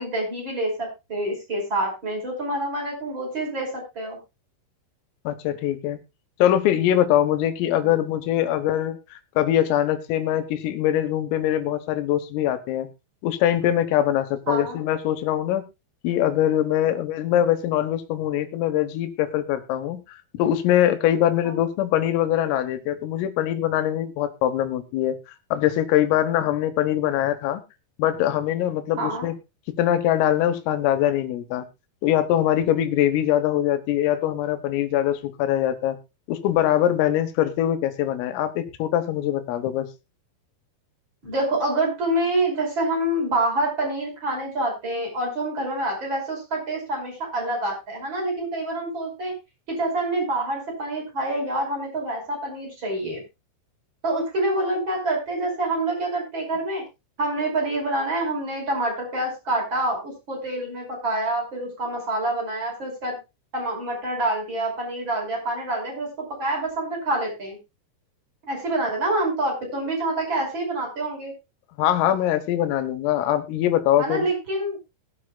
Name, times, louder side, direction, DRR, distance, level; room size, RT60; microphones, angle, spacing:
voice 1, 0.0-4.2 7.8-8.0 14.5-14.8 21.4-21.6 29.0-29.3 41.2-49.3 49.7-53.2 54.0-56.8 57.2-63.2 63.5-67.6 68.5-71.3 74.0-74.8, right 1 dB, 25° right, 0 dB, 5.4 m, -27 dB
voice 2, 5.3-6.0 6.4-12.9 13.2-15.6 16.0-20.0 20.4-25.2 25.5-27.6 28.0-29.4 29.8-31.7 32.0-36.0 36.3-39.9 71.8-74.3, left 11 dB, 90° left, 9 dB, 3.9 m, -22 dB
21.5 x 7.6 x 2.3 m, 0.25 s
omnidirectional pair, 5.8 m